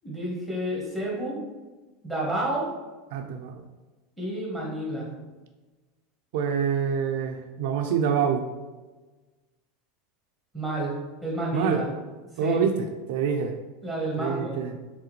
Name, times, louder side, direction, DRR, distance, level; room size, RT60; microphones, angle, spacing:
voice 1, 0.0-1.3 2.0-2.7 4.2-5.1 10.5-10.9 11.2-11.9 12.3-12.6 13.8-14.6, right 1 dB, ahead, -4 dB, 1.2 m, -30 dB
voice 2, 3.1-3.6 6.3-8.5 11.5-11.8 12.4-13.6 14.2-14.7, right 7 dB, 60° right, 5 dB, 0.4 m, -26 dB
4.7 x 3.5 x 3.1 m, 1.2 s
supercardioid pair, 170°, 0 cm